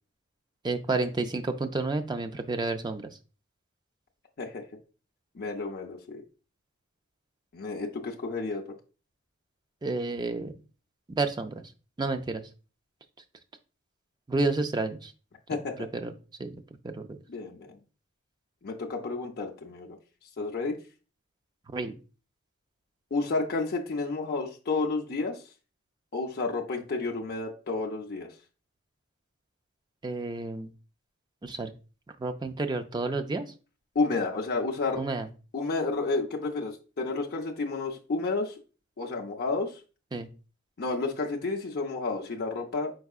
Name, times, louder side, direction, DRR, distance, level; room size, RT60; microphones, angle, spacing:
voice 1, 0.6-3.1 9.8-10.5 11.2-11.6 12.0-12.4 14.3-15.1 15.9-16.1 16.4-16.6 16.8-17.2 21.7-22.0 30.0-30.7 31.4-31.7 32.2-33.5 35.0-35.3 40.1-40.3, right 3 dB, 20° right, 7 dB, 0.4 m, -30 dB
voice 2, 5.3-6.2 7.5-8.6 15.5-15.7 17.3-17.8 18.6-20.0 20.4-20.8 23.1-25.4 26.1-28.3 33.9-35.0 35.5-38.6 39.0-39.7 40.8-42.9, left 3 dB, 45° left, 0 dB, 0.6 m, -31 dB
4.7 x 4.5 x 2.4 m, 0.35 s
head